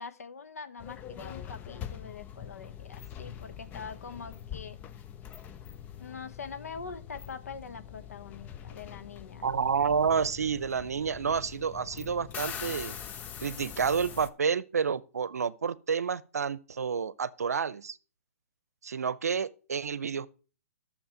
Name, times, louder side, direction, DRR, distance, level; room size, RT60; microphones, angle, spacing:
voice 1, 0.0-4.8 6.0-9.5, left 5 dB, 80° left, 1.1 m, -43 dB
sound 1, 0.8-14.3, left 9 dB, 20° left, 0.6 m, -43 dB
voice 2, 9.4-13.0 13.4-18.0 18.8-20.3, right 6 dB, 85° right, 0.7 m, -29 dB
11.5 x 7.2 x 5.0 m
hypercardioid pair, 135°, 8 cm